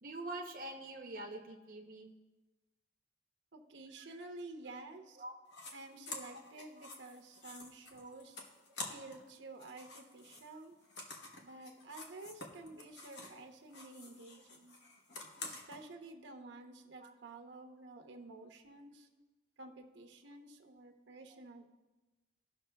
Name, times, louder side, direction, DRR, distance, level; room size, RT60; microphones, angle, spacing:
voice 1, 0.0-2.1 5.2-5.3 8.0-8.1 17.0-17.1, right 2 dB, 50° right, 1 dB, 0.7 m, -45 dB
voice 2, 3.5-5.2 5.7-8.4 8.9-10.8 11.4-14.8 15.4-19.1 19.6-21.7, right 2 dB, 80° right, 4 dB, 0.8 m, -51 dB
sound 1, 5.5-5.7 6.0-9.3 9.5-13.4 13.7-15.8, left 3 dB, 70° left, 1.0 m, -49 dB
17.0 x 6.0 x 2.2 m, 1.1 s
head